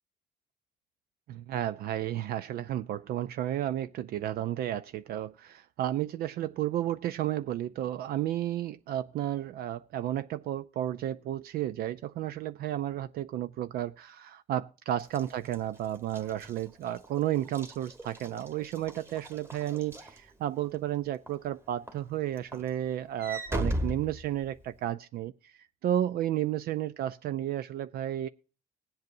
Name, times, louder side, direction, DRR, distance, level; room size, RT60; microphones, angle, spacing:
voice 1, 1.3-28.3, right 12 dB, 65° right, 0.4 m, -32 dB
Walk footsteps / Slam, 15.0-20.8 21.3-21.5 21.9-24.9, right 1 dB, 15° right, 1.4 m, -38 dB
20.5 x 8.0 x 2.6 m
cardioid pair, 110°, 17 cm